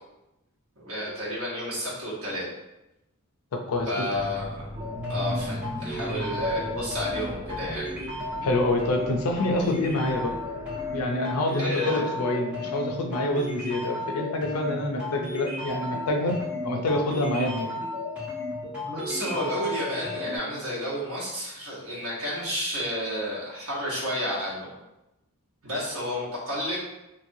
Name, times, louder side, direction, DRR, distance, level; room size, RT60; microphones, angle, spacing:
voice 1, 0.8-2.5 3.9-4.7 5.1-7.9 11.6-12.1 18.9-24.7 25.6-26.8, equal, 65° right, -6 dB, 1.2 m, -31 dB
voice 2, 3.5-3.9 8.4-10.4 10.9-16.4 16.6-17.7, left 1 dB, 85° left, 3 dB, 0.5 m, -26 dB
sound 1, 4.1-11.0, equal, 20° right, 0.4 m, -38 dB
sound 2, 4.8-20.4, left 2 dB, 5° right, 1.4 m, -34 dB
3.1 x 2.6 x 2.6 m, 0.93 s
head